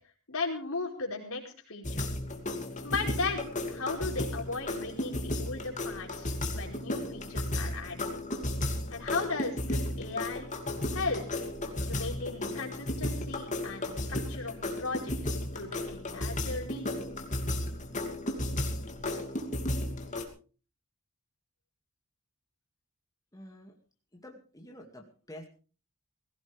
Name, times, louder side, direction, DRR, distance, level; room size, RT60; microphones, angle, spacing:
voice 1, 0.3-2.1 2.8-8.0 8.9-10.5 10.9-11.2 11.9-15.1 15.5-16.9, left 3 dB, 75° left, 1 dB, 4.7 m, -36 dB
sound 1, 1.8-20.3, left 1 dB, 35° left, 2.6 m, -34 dB
voice 2, 23.3-23.8 24.1-25.5, left 1 dB, 15° left, 1 dB, 2.3 m, -48 dB
19.5 x 16.5 x 3.5 m, 0.38 s
head